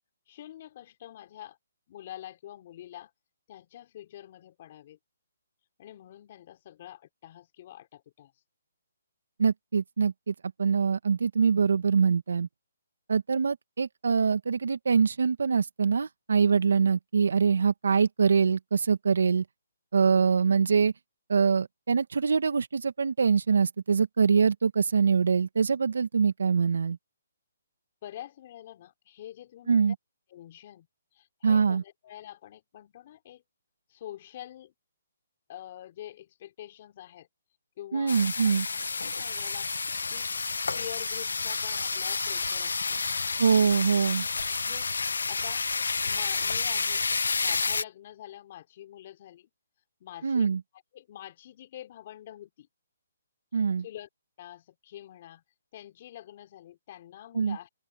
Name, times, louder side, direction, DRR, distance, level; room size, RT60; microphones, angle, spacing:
voice 1, 0.3-1.6 1.9-3.1 3.5-5.0 5.8-8.3 28.0-29.9 30.3-30.9 31.1-33.4 33.9-34.7 35.5-37.3 37.8-38.5 39.0-39.7 40.1-40.3 40.7-43.0 44.6-45.6 46.0-47.0 47.4-49.5 50.0-50.5 50.9-52.7 53.8-54.1 54.4-55.4 55.7-57.7, left 12 dB, 40° left, 3.3 m, -46 dB
voice 2, 9.4-12.5 13.1-19.4 19.9-20.9 21.3-27.0 29.7-29.9 31.4-31.8 37.9-38.7 43.4-44.3 50.2-50.6 53.5-53.8 57.4-57.6, right 5 dB, 75° right, 1.9 m, -24 dB
sound 1, 38.1-47.8, left 4 dB, 85° left, 1.1 m, -30 dB
open air
hypercardioid pair, 155°, 0 cm